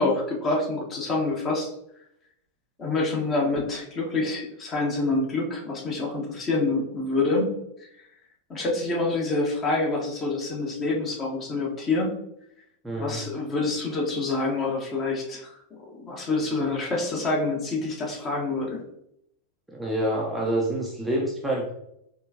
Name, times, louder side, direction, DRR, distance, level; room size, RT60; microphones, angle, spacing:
voice 1, 0.0-1.7 2.8-7.5 8.5-12.1 13.0-15.6 15.9-18.8, left 2 dB, 25° left, -2 dB, 1.3 m, -27 dB
voice 2, 12.8-13.2 19.7-21.7, right 1 dB, 5° right, -3 dB, 0.7 m, -27 dB
4.3 x 3.4 x 2.8 m, 0.78 s
figure-of-eight pair, 90°, 0 cm